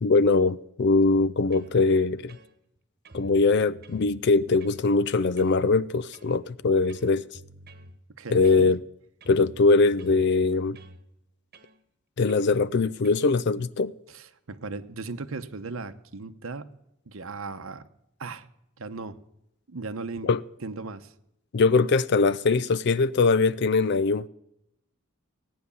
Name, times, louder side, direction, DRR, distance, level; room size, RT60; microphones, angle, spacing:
voice 1, 0.0-2.4 3.1-7.2 8.3-8.8 9.3-10.8 12.2-13.9 20.2-20.4 21.5-24.3, left 3 dB, 50° left, 0.4 m, -22 dB
sound 1, 1.2-1.8 2.3-2.8 3.0-4.8 5.4-5.6 6.1-6.4 6.9-7.9 8.4-8.9 9.2-11.0 11.5-11.8 12.3-12.5 13.0-13.3, right 2 dB, 45° right, 1.2 m, -48 dB
voice 2, 8.2-8.7 14.1-16.7 17.1-17.9 18.2-18.5 18.8-19.2 19.7-20.3 20.6-21.1, right 3 dB, 70° right, 0.9 m, -37 dB
16.5 x 9.4 x 7.0 m
head